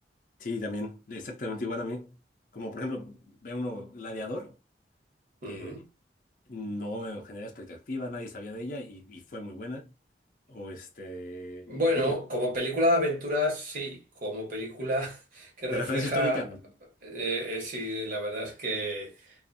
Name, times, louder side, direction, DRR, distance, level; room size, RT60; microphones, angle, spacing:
voice 1, 0.4-2.2 2.5-4.5 5.5-5.8 6.5-9.9 10.5-12.1 15.7-16.6, left 2 dB, 50° left, 0.5 m, -36 dB
voice 2, 5.4-5.9 11.7-16.5 17.0-19.3, equal, 50° right, 1.1 m, -30 dB
2.5 x 2.4 x 2.5 m
head